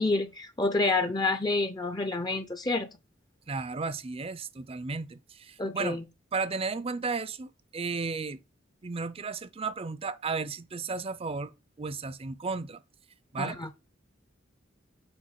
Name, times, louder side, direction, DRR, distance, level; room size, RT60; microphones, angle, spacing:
voice 1, 0.0-2.9 5.6-6.0 13.4-13.7, left 3 dB, 20° left, 0.6 m, -28 dB
voice 2, 3.5-6.0 6.3-8.4 8.8-11.5 11.8-12.8 13.3-13.6, right 4 dB, 30° right, 0.5 m, -34 dB
7.9 x 3.0 x 5.6 m
head